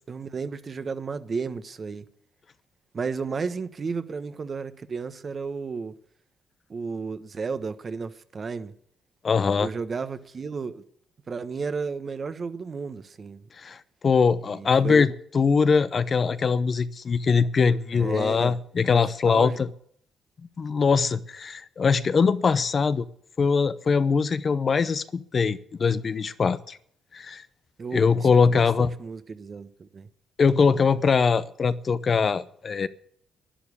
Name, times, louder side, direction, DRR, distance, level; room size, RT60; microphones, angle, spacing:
voice 1, 0.1-2.0 2.9-5.9 6.7-8.7 9.6-10.8 11.3-13.4 14.4-15.1 17.9-19.6 27.8-30.1, right 5 dB, 40° right, 1.2 m, -33 dB
voice 2, 9.2-9.7 13.6-13.8 14.0-19.7 20.6-23.1 23.4-26.8 27.1-27.4 27.9-28.9 30.4-32.9, left 5 dB, 40° left, 0.7 m, -22 dB
11.5 x 10.5 x 8.6 m
cardioid pair, 90°, 0 cm